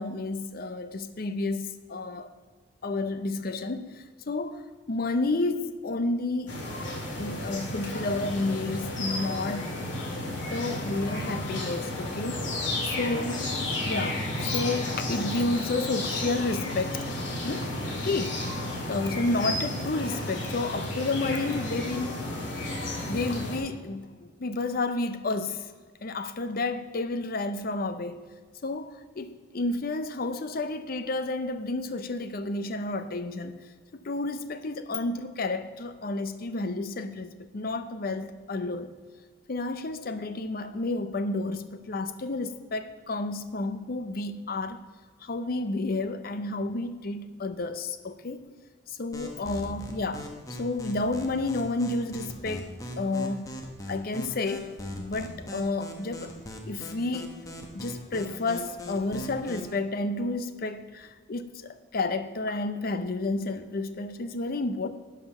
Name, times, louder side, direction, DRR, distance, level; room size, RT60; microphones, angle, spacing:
voice 1, 0.0-2.3 2.8-4.6 4.9-6.5 7.2-9.7 10.5-12.4 12.8-13.5 13.8-17.1 17.4-18.6 18.9-22.2 23.1-25.7 26.0-28.3 28.6-33.6 33.9-39.0 39.5-44.8 45.2-48.4 48.9-50.3 50.6-52.7 53.0-53.6 53.9-56.3 56.6-57.3 57.7-64.9, left 2 dB, 50° left, 0.6 m, -31 dB
sound 1, 6.5-23.6, left 1 dB, 70° left, 2.2 m, -32 dB
sound 2, 49.1-59.7, equal, 20° left, 1.0 m, -40 dB
11.5 x 5.0 x 5.5 m
head